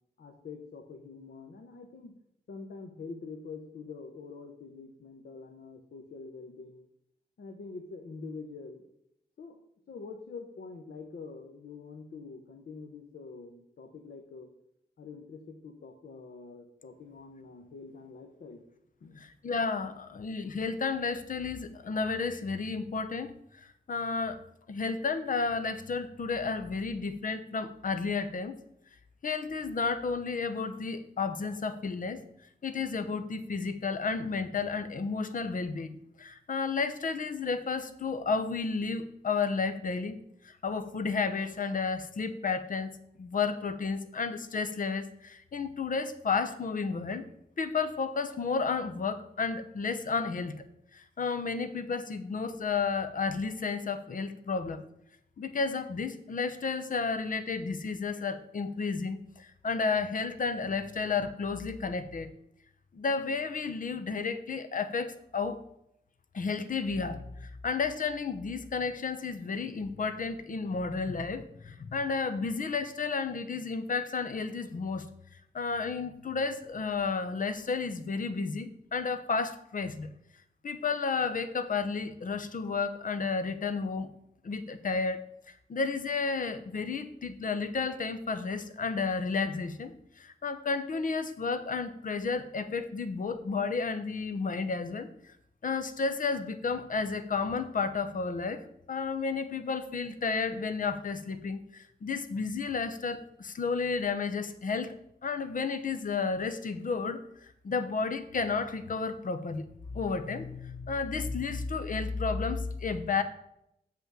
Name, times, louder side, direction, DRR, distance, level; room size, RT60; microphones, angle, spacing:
voice 1, 0.2-2.1 2.5-6.9 7.4-8.9 9.4-9.6 9.9-14.5 15.0-18.6 19.0-19.3, left 4 dB, 75° left, 4 dB, 1.0 m, -45 dB
voice 2, 19.2-23.3 23.9-24.4 24.7-28.6 29.2-32.2 32.6-40.2 40.4-47.3 47.6-50.6 50.9-54.9 55.4-62.3 62.9-65.6 66.3-75.1 75.5-80.1 80.6-84.1 84.4-85.2 85.7-95.3 95.6-104.9 105.2-109.6 109.9-113.2, left 4 dB, 50° left, 10 dB, 0.8 m, -32 dB
6.9 x 5.8 x 7.5 m, 0.77 s
wide cardioid pair, 140°, 17 cm